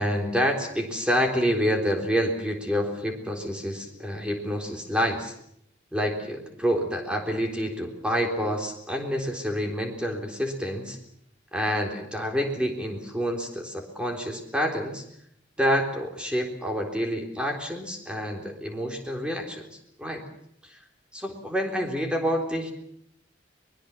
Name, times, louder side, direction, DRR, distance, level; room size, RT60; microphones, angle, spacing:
voice 1, 0.0-5.3 5.9-11.0 11.5-15.0 15.6-20.2 20.6-20.8 21.1-22.7, equal, 5° right, 2 dB, 3.8 m, -28 dB
23.0 x 22.0 x 7.3 m, 0.72 s
head